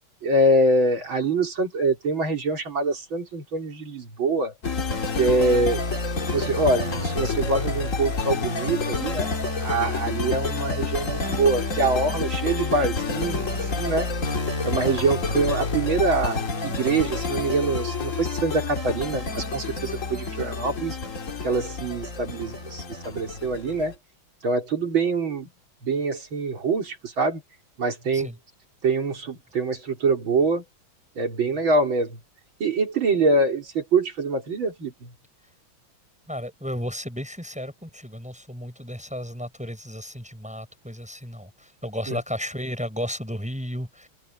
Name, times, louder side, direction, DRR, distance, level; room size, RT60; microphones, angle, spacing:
voice 1, 0.2-4.5 5.1-5.8 6.3-9.3 9.6-14.1 14.6-21.0 21.4-23.9 24.4-25.5 25.8-27.4 27.8-28.3 28.8-30.6 31.2-32.2 32.6-35.1 42.1-42.2, right 3 dB, 75° right, 4.8 m, -24 dB
sound 1, 4.6-23.9, left 3 dB, 40° left, 2.3 m, -28 dB
voice 2, 36.3-44.1, equal, 5° right, 6.4 m, -33 dB
open air
omnidirectional pair, 2.2 m